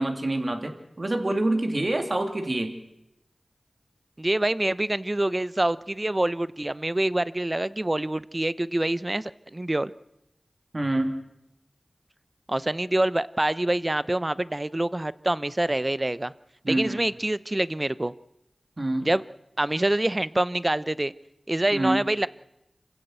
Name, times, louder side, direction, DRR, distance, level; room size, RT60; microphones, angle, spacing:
voice 1, 0.0-2.7 10.7-11.1 16.6-17.0 18.8-19.1 21.7-22.0, right 1 dB, 50° right, 5 dB, 2.9 m, -26 dB
voice 2, 4.2-9.9 12.5-16.3 16.7-18.1 19.0-19.2 19.6-21.1 21.5-22.3, right 1 dB, 30° right, 17 dB, 0.7 m, -26 dB
26.5 x 16.0 x 8.0 m, 0.87 s
cardioid pair, 40°, 0 cm